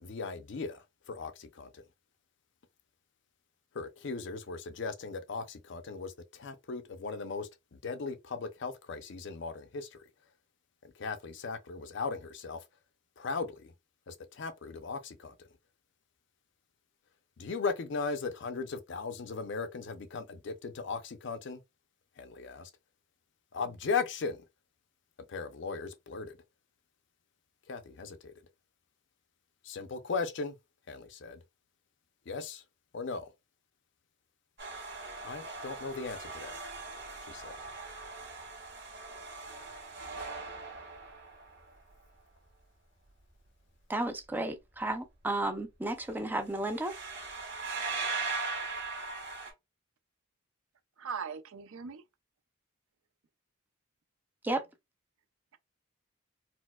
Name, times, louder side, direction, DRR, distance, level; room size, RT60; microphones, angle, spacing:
voice 1, 0.0-1.8 3.7-10.0 11.0-12.6 13.2-13.7 14.1-15.3 17.4-21.6 22.2-22.7 23.5-24.4 25.3-26.4 27.7-28.3 29.6-30.6 30.9-31.4 32.3-32.6 32.9-33.3 35.2-36.6 37.2-37.6, left 4 dB, 60° left, 0.5 m, -37 dB
sound 1, 34.6-41.7 46.0-46.2 46.5-49.5, right 3 dB, 55° right, 1.5 m, -40 dB
voice 2, 43.9-46.9 54.4-54.6, right 2 dB, 10° right, 0.4 m, -33 dB
voice 3, 51.0-52.0, right 6 dB, 85° right, 0.5 m, -39 dB
4.2 x 2.0 x 2.2 m
head